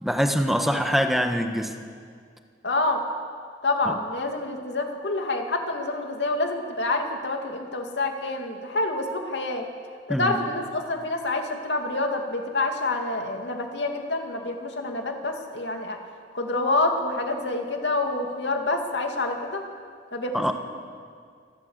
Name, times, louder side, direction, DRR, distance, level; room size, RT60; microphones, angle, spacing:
voice 1, 0.0-1.7 3.9-4.0 10.1-10.4 20.3-20.5, equal, ahead, 5 dB, 1.5 m, -24 dB
voice 2, 2.6-3.0 3.6-9.7 10.1-16.0 16.3-19.6 20.1-20.5, left 2 dB, 70° left, 3 dB, 2.6 m, -27 dB
25.0 x 15.5 x 8.2 m, 2.1 s
head